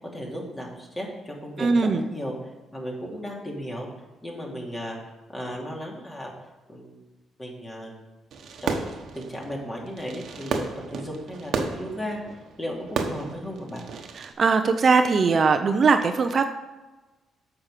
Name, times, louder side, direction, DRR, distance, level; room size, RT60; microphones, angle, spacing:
voice 1, 0.0-2.3 2.7-3.9 4.2-5.0 5.3-6.3 6.7-7.1 7.4-8.0 8.6-13.8, equal, 20° left, -1 dB, 2.8 m, -35 dB
voice 2, 1.6-2.0 14.4-16.5, right 4 dB, 45° right, 7 dB, 0.7 m, -20 dB
Fireworks, 8.3-14.3, right 5 dB, 65° right, 1.2 m, -33 dB
8.7 x 6.0 x 6.7 m, 1.1 s
cardioid pair, 90°, 0 cm